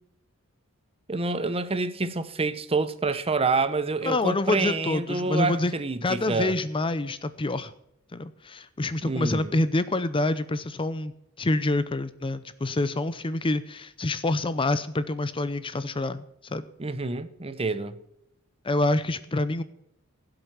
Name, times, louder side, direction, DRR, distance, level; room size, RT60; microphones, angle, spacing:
voice 1, 1.1-6.5 9.0-9.5 16.8-17.9, right 3 dB, 25° right, 0.9 m, -27 dB
voice 2, 4.0-5.7 6.0-7.7 8.1-11.1 11.4-16.6 18.6-19.6, left 2 dB, 25° left, 0.6 m, -27 dB
16.0 x 7.9 x 5.6 m
head